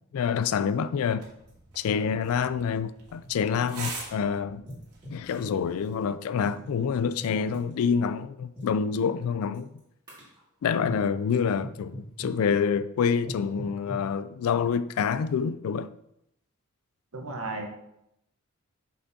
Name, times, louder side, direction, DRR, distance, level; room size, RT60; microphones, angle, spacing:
voice 1, 0.1-1.2 1.8-4.6 5.1-9.7 10.6-15.9, left 6 dB, 70° left, 0.3 m, -27 dB
sound 1, 1.1-6.1, right 3 dB, 90° right, 1.7 m, -44 dB
sound 2, 1.5-1.6 1.8-1.9 2.8-3.9 4.7-5.6 6.4-7.8 8.5-8.8 9.5-9.8 10.1-10.4 10.8-11.1 11.6-12.4 13.2-14.1, equal, 20° right, 2.1 m, -42 dB
voice 2, 17.1-17.7, right 2 dB, 70° right, 1.0 m, -34 dB
6.1 x 5.8 x 2.7 m
head